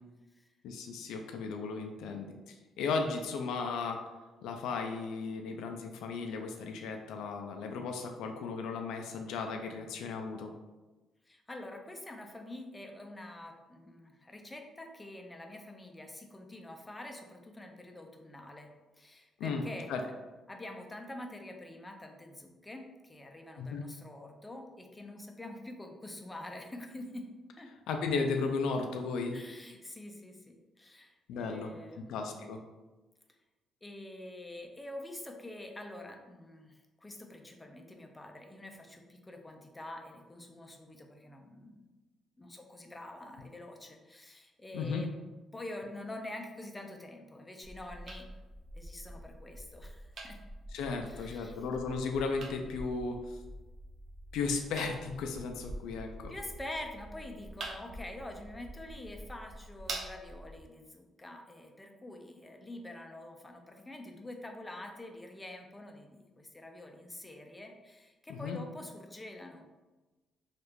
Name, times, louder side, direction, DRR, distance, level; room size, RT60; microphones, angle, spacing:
voice 1, 0.6-4.0 4.4-10.5 19.4-19.6 19.9-20.0 23.6-23.8 27.9-29.4 31.3-32.6 44.7-45.0 50.7-53.4 54.3-56.3 68.4-68.6, left 4 dB, 85° left, 4 dB, 0.3 m, -35 dB
voice 2, 11.3-20.1 20.5-27.3 27.6-27.7 29.3-32.2 33.8-41.9 42.4-45.1 45.5-48.3 48.7-50.4 51.1-51.6 56.3-69.7, left 1 dB, 15° left, 3 dB, 0.5 m, -46 dB
sound 1, 47.6-60.6, right 1 dB, 50° right, 0.5 m, -46 dB
3.2 x 2.4 x 3.0 m, 1.2 s
cardioid pair, 90°, 0 cm